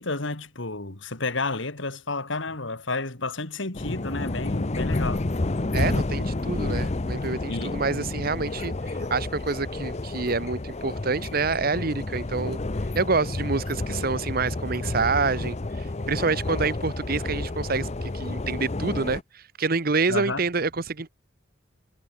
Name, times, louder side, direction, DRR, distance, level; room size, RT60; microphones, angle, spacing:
voice 1, 0.0-5.2 7.5-7.7 20.1-20.4, left 3 dB, 75° left, 2.7 m, -31 dB
sound 1, 3.7-19.2, left 2 dB, 35° left, 0.7 m, -30 dB
voice 2, 5.7-12.6 12.9-21.1, right 4 dB, 50° right, 1.0 m, -27 dB
head